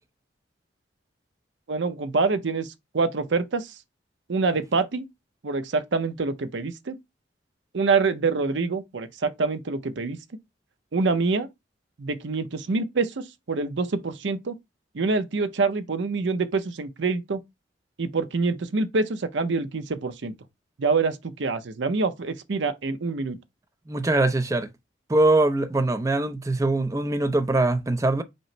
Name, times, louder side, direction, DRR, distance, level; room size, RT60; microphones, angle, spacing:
voice 1, 1.7-2.7 2.9-3.7 4.3-5.1 5.4-7.0 7.7-10.2 10.9-11.5 12.0-14.6 14.9-17.4 18.0-20.3 20.8-23.4, right 4 dB, 75° right, 0.6 m, -26 dB
voice 2, 23.9-24.7 25.1-28.2, right 2 dB, 15° right, 0.4 m, -22 dB
5.2 x 2.0 x 4.3 m
head